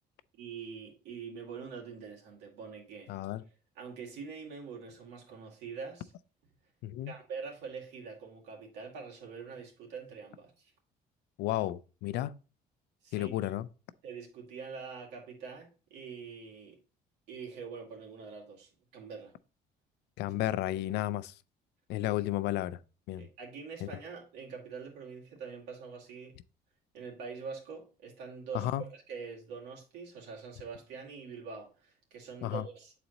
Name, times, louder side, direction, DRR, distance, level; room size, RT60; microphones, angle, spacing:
voice 1, 0.3-3.1 3.8-6.1 7.1-10.7 13.0-13.3 14.0-16.8 17.3-19.3 23.2-26.3 26.9-32.9, right 5 dB, 85° right, 2.2 m, -44 dB
voice 2, 3.1-3.4 6.8-7.1 11.4-12.3 13.1-13.7 20.2-21.3 21.9-22.8 23.1-23.2 23.8-23.9 28.5-28.8 32.4-32.6, left 14 dB, 80° left, 0.4 m, -32 dB
8.8 x 4.1 x 2.9 m
cardioid pair, 110°, 17 cm